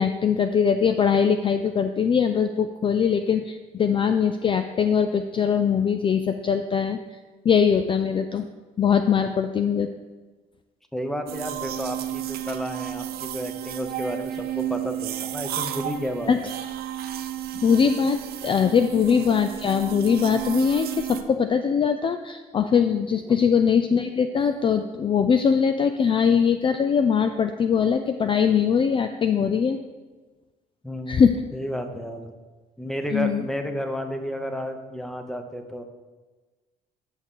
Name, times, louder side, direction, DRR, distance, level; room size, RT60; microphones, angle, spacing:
voice 1, 0.0-7.0 7.4-8.5 8.8-9.9 16.3-16.4 17.6-29.8 31.1-31.4 33.1-33.4, left 7 dB, 30° left, 8 dB, 0.4 m, -21 dB
voice 2, 10.9-16.5 23.2-23.4 30.8-32.3 32.8-35.8, equal, ahead, 6 dB, 0.9 m, -32 dB
sound 1, 11.3-21.2, right 12 dB, 65° right, 0.7 m, -32 dB
10.5 x 6.4 x 3.7 m, 1.3 s
cardioid pair, 110°, 17 cm